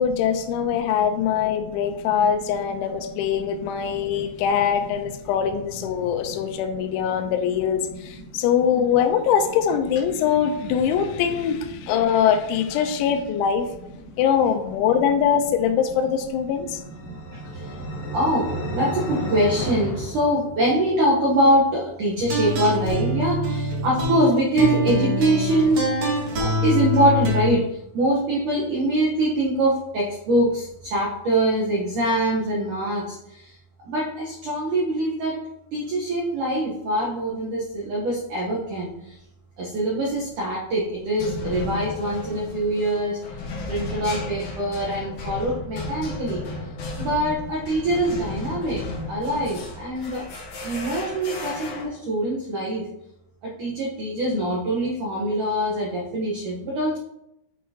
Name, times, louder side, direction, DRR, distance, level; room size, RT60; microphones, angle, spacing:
voice 1, 0.0-13.7 14.2-16.8, left 8 dB, 85° left, 7 dB, 3.0 m, -22 dB
sound 1, 16.4-21.0, right 1 dB, 50° left, 2.0 m, -32 dB
voice 2, 17.0-17.8 18.1-26.1 26.4-33.5 33.9-35.4 35.7-39.2 39.6-43.2 43.7-46.4 47.0-50.2 50.6-52.9 53.4-57.0, right 1 dB, 90° right, -4 dB, 1.7 m, -24 dB
sound 2, 22.2-27.5, equal, 55° right, 1.9 m, -24 dB
sound 3, 40.1-40.4 41.2-51.8, left 3 dB, 70° left, 1.8 m, -34 dB
9.2 x 5.6 x 2.8 m, 0.85 s
omnidirectional pair, 5.4 m